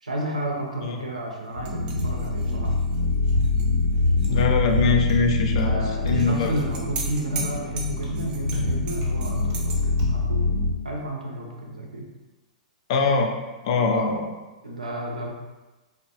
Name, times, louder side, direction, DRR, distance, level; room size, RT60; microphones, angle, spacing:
voice 1, 0.0-2.7 5.5-10.4 10.8-12.0 13.9-14.1 14.6-15.3, right 1 dB, 85° right, -1 dB, 0.5 m, -32 dB
sound 1, 1.5-10.7, left 2 dB, 80° left, 0.8 m, -24 dB
sound 2, 1.7-4.4 4.7-4.8 6.2-9.8, right 4 dB, 25° right, 0.4 m, -38 dB
voice 2, 4.3-6.5 12.9-13.3 13.6-14.3, left 4 dB, 50° left, 3 dB, 0.4 m, -23 dB
sound 3, 5.1-5.3 5.6-5.7 6.1-6.3 6.6-6.7 7.0-7.2 7.5-7.7 8.0-8.1 8.5-8.6 9.0-9.2 9.5-9.7 10.0-10.2, right 1 dB, 45° right, 0.8 m, -38 dB
2.6 x 2.0 x 2.8 m, 1.1 s
figure-of-eight pair, 110°, 4 cm